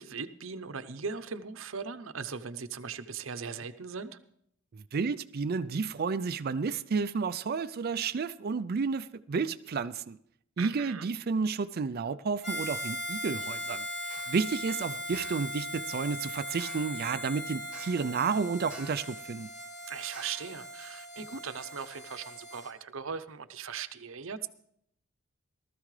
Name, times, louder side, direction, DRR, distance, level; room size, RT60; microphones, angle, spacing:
voice 1, 0.0-4.2 10.6-11.1 19.9-24.5, right 6 dB, 70° right, 0.8 m, -39 dB
voice 2, 4.7-10.2 10.6-19.5, right 5 dB, 50° right, 0.4 m, -31 dB
Harmonica, 12.4-22.7, equal, 35° left, 2.2 m, -39 dB
sound 1, 14.1-14.4 15.1-15.5 16.6-17.0 17.7-18.2 18.7-19.2 20.1-20.6, right 2 dB, 5° right, 2.1 m, -50 dB
18.5 x 13.5 x 3.3 m
head